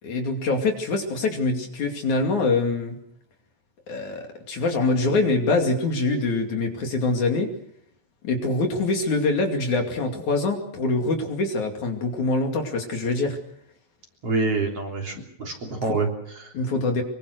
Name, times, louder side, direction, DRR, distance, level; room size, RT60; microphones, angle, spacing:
voice 1, 0.0-3.0 3.9-7.5 8.2-13.4 15.1-15.2 15.7-15.8 16.5-17.0, left 3 dB, 55° left, 3 dB, 3.8 m, -24 dB
voice 2, 14.2-15.1 15.4-16.5, right 3 dB, 40° right, 1 dB, 4.3 m, -26 dB
24.5 x 23.5 x 6.6 m, 0.68 s
omnidirectional pair, 4.1 m